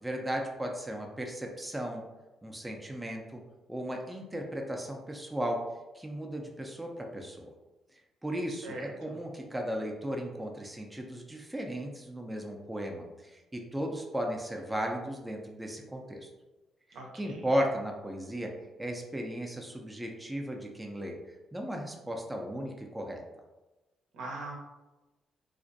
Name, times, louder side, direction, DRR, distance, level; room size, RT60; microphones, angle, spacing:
voice 1, 0.0-2.0 2.4-3.4 3.7-5.6 5.9-7.5 8.2-16.3 17.1-18.5 18.8-21.2 21.5-23.2, equal, 10° right, 1 dB, 0.4 m, -35 dB
voice 2, 8.6-9.1 16.9-17.4 24.1-24.5, right 2 dB, 80° right, 0 dB, 0.6 m, -41 dB
2.4 x 2.1 x 2.5 m, 1.1 s
cardioid pair, 90°, 0 cm